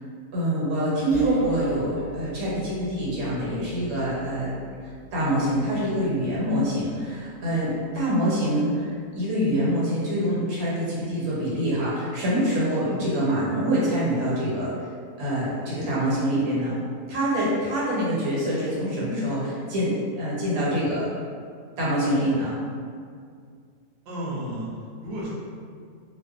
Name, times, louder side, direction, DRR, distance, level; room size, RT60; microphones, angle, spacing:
voice 1, 0.3-4.5 4.8-14.7 15.2-16.8 17.1-21.1 21.8-22.6, equal, 85° right, -7 dB, 1.2 m, -25 dB
sound 1, 1.1-8.7, right 1 dB, 50° left, 0.7 m, -42 dB
voice 2, 24.0-25.3, right 1 dB, 55° right, -6 dB, 0.7 m, -33 dB
2.5 x 2.1 x 2.4 m, 2.1 s
omnidirectional pair, 1.5 m